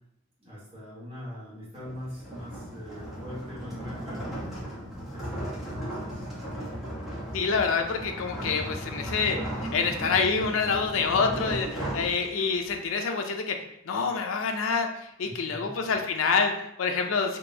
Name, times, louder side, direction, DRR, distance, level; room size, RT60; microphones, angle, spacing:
voice 1, 0.4-6.3 15.2-15.8, equal, 30° right, -8 dB, 1.3 m, -42 dB
sound 1, 1.8-12.7, equal, ahead, 1.1 m, -36 dB
voice 2, 7.3-13.6 13.9-17.4, left 5 dB, 75° left, 4 dB, 0.5 m, -27 dB
3.7 x 2.5 x 2.8 m, 0.81 s
head